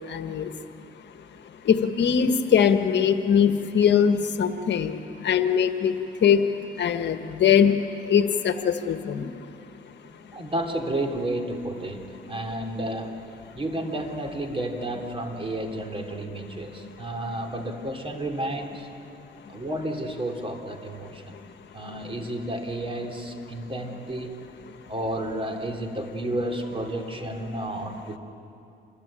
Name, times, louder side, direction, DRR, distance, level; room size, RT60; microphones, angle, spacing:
voice 1, 0.1-0.5 1.6-6.5 6.8-7.8 8.1-9.3, left 8 dB, 60° left, 7 dB, 1.4 m, -21 dB
voice 2, 10.3-13.2 13.5-18.9 19.5-21.3 21.7-24.4 24.9-28.2, right 1 dB, 25° right, 3 dB, 3.4 m, -31 dB
26.5 x 22.0 x 9.0 m, 2.7 s
cardioid pair, 90°, 20 cm